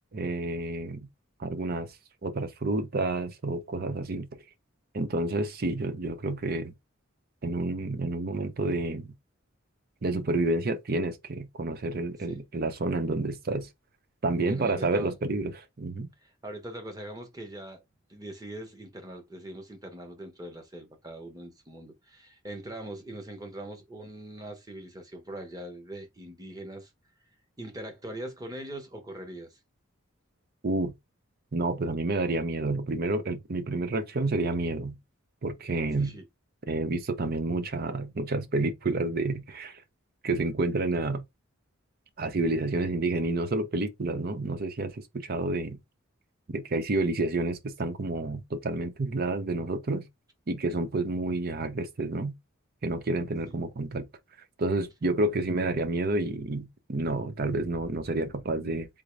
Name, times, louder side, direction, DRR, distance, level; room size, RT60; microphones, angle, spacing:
voice 1, 0.1-1.1 1.4-1.9 2.2-4.3 4.9-6.7 7.4-9.1 10.0-13.7 14.2-16.1 30.6-30.9 31.5-35.0 35.4-36.1 36.7-39.8 40.2-41.2 42.2-45.8 46.5-50.1 50.5-52.3 52.8-54.1 54.6-58.9, right 2 dB, 50° right, 0.6 m, -29 dB
voice 2, 14.4-15.1 16.2-17.8 18.1-26.9 27.6-29.6 36.0-36.2 53.4-53.6, right 1 dB, 20° right, 1.0 m, -41 dB
3.6 x 2.6 x 3.2 m
head